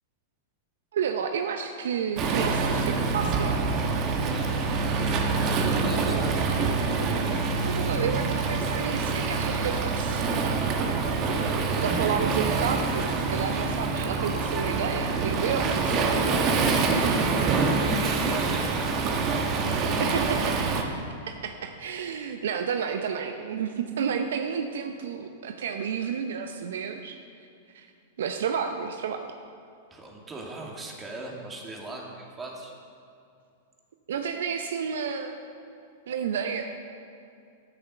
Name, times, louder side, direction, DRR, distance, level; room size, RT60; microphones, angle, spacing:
voice 1, 0.9-3.6 7.6-10.2 11.8-16.2 20.0-20.6 21.3-27.2 27.7-27.9 28.2-29.3 34.1-35.4 36.1-36.7, right 7 dB, 70° right, 6 dB, 0.7 m, -31 dB
Waves surf, 2.2-20.8, right 4 dB, 40° right, 1.4 m, -26 dB
voice 2, 4.3-6.3 11.2-11.7 16.5-19.1 19.4-20.3 29.9-32.7, right 2 dB, 20° right, -1 dB, 2.3 m, -40 dB
13.5 x 6.8 x 6.6 m, 2.5 s
hypercardioid pair, 100°, 0 cm